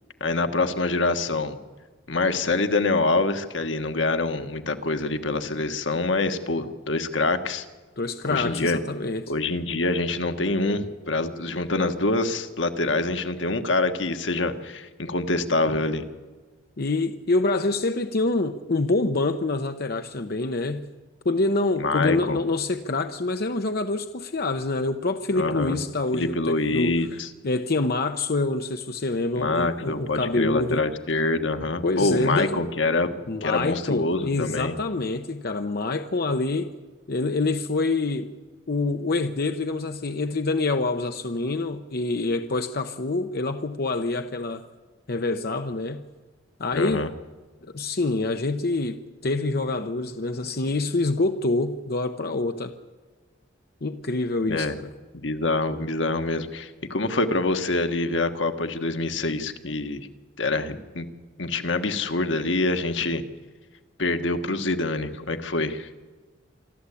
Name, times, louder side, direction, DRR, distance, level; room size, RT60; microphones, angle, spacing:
voice 1, 0.2-1.6 2.1-7.6 8.3-8.8 9.3-16.0 21.8-22.4 25.3-25.8 26.1-27.3 29.4-33.1 33.4-34.7 46.7-47.1 54.5-54.7 55.1-60.1 60.4-61.1 61.4-63.2 64.0-65.9, left 2 dB, 85° left, 1.5 m, -25 dB
voice 2, 8.0-9.3 16.8-20.9 21.2-26.9 27.4-30.8 31.8-32.6 33.3-36.7 37.1-38.3 38.7-44.6 45.1-46.0 46.6-47.1 47.7-52.7 53.8-54.8, left 2 dB, 55° left, 0.9 m, -26 dB
26.0 x 13.0 x 8.4 m
head